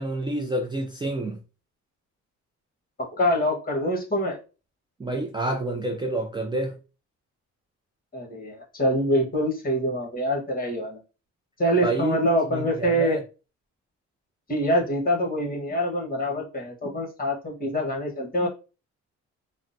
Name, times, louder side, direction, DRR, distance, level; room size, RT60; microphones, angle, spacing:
voice 1, 0.0-1.4 5.0-6.8 11.8-12.2 12.5-13.2, right 2 dB, 15° right, 0.4 m, -28 dB
voice 2, 3.0-4.4 8.1-11.0 11.6-13.2 14.5-18.5, equal, 30° left, 1.4 m, -25 dB
3.4 x 2.1 x 2.7 m
cardioid pair, 90°, 30 cm